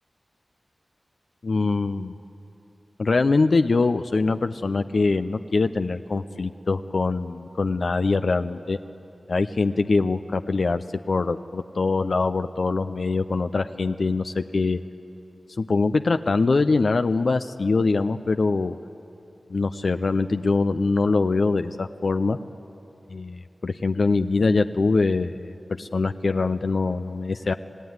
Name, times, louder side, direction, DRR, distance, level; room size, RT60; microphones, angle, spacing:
voice 1, 1.4-2.1 3.0-8.8 9.3-14.8 15.6-18.8 19.5-22.4 23.1-27.5, left 3 dB, 70° left, 8 dB, 0.5 m, -23 dB
27.0 x 17.5 x 9.6 m, 2.9 s
cardioid pair, 40°, 0 cm